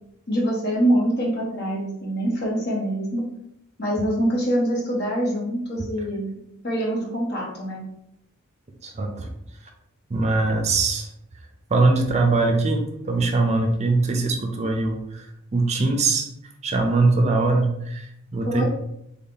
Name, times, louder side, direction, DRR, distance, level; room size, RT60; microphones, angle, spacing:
voice 1, 0.3-3.2 3.8-6.4 6.6-7.8 18.5-18.6, right 1 dB, 55° left, -4 dB, 1.4 m, -24 dB
voice 2, 8.8-9.3 10.1-11.1 11.7-15.3 15.5-16.3 16.6-18.1 18.3-18.6, right 3 dB, 35° right, 3 dB, 0.5 m, -21 dB
3.6 x 2.7 x 3.8 m, 0.79 s
head